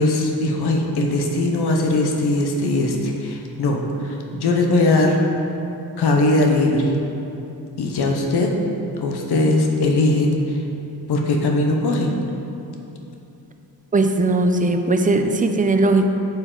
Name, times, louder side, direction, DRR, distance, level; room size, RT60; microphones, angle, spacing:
voice 1, 0.0-5.2 6.0-6.9 7.8-8.5 9.0-10.6 11.1-12.2, left 2 dB, 75° left, 1 dB, 0.8 m, -20 dB
voice 2, 13.9-16.1, right 2 dB, 20° right, 6 dB, 0.5 m, -18 dB
9.0 x 4.5 x 3.8 m, 2.9 s
cardioid pair, 95°, 39 cm